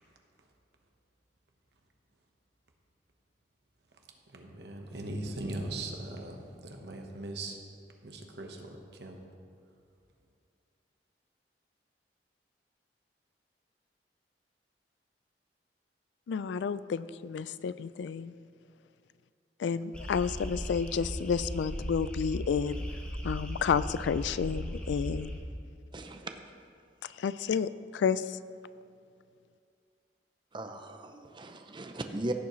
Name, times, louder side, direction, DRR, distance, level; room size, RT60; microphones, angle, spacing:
voice 1, 4.3-7.6 8.0-9.2, right 2 dB, 65° right, 3 dB, 1.1 m, -40 dB
voice 2, 16.3-18.3 19.6-22.8 23.2-25.4 27.0-28.4, left 6 dB, 85° left, 15 dB, 0.3 m, -31 dB
sound 1, 19.9-25.4, equal, 5° left, 1.0 m, -37 dB
voice 3, 25.9-26.4 30.5-32.3, right 1 dB, 25° right, 6 dB, 0.6 m, -38 dB
16.0 x 7.2 x 3.1 m, 2.4 s
head